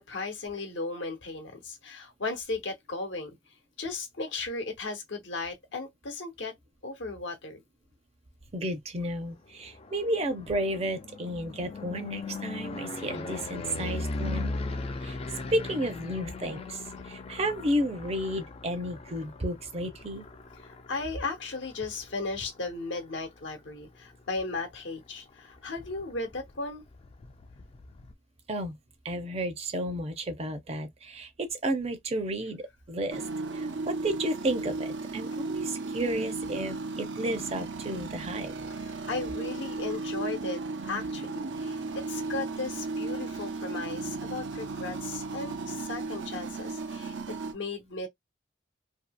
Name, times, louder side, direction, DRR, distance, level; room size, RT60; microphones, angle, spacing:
voice 1, 0.0-3.4 3.8-6.5 6.8-7.6 20.6-26.8 38.8-48.1, left 3 dB, 85° left, 1.0 m, -36 dB
voice 2, 8.5-14.5 15.0-20.3 28.5-28.8 29.0-33.2 33.5-38.5, right 1 dB, 35° right, 0.6 m, -32 dB
sound 1, 9.5-23.5 23.9-24.4 24.7-24.8 25.1-28.1, left 3 dB, 35° left, 0.4 m, -39 dB
sound 2, 33.1-47.5, right 3 dB, 80° right, 0.7 m, -35 dB
2.7 x 2.7 x 2.2 m
head